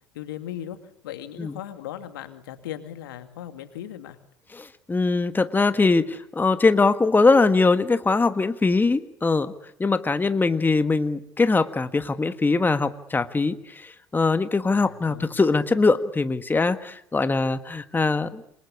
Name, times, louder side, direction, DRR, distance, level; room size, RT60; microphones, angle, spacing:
voice 1, 0.1-4.2 14.7-15.4, left 11 dB, 80° left, 8 dB, 2.4 m, -38 dB
voice 2, 4.6-9.5 9.8-18.4, left 3 dB, 15° left, 10 dB, 1.5 m, -22 dB
28.0 x 21.5 x 8.5 m, 0.73 s
hypercardioid pair, 70°, 11 cm